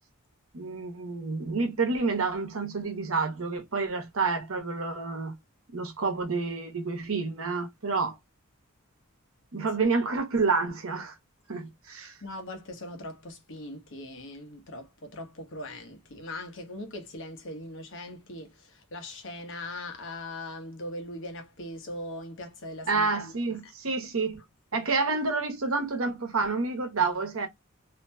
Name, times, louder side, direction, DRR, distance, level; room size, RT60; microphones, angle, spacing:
voice 1, 0.5-5.3 5.7-8.2 9.5-11.1 11.5-12.1 22.9-24.4 24.7-27.5, right 4 dB, 80° right, 0.9 m, -29 dB
voice 2, 12.2-23.1 23.6-23.7, left 1 dB, 65° left, 0.9 m, -40 dB
2.7 x 2.6 x 2.2 m
head